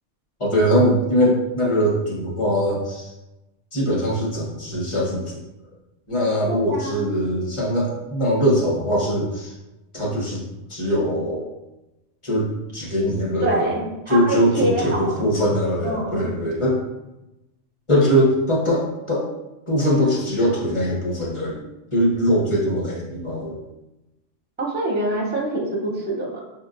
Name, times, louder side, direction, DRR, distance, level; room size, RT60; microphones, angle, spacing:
voice 1, 0.4-3.1 3.7-5.4 6.1-9.5 9.9-10.4 10.7-11.5 12.2-12.5 12.7-13.7 14.1-16.8 17.9-19.3 19.7-21.6 21.9-23.6, equal, 30° left, -4 dB, 0.8 m, -21 dB
voice 2, 6.5-7.1 13.4-15.3 15.8-16.3 24.6-26.4, right 1 dB, 15° right, -2 dB, 0.4 m, -25 dB
5.2 x 2.8 x 2.5 m, 0.98 s
omnidirectional pair, 1.3 m